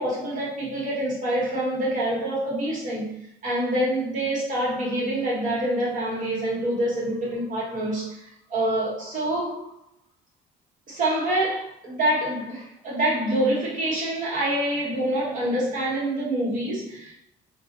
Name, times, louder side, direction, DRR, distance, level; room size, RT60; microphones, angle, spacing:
voice 1, 0.0-8.2 8.5-9.7 10.9-17.2, right 1 dB, 50° right, -6 dB, 1.4 m, -26 dB
2.6 x 2.4 x 2.6 m, 0.74 s
cardioid pair, 110°, 17 cm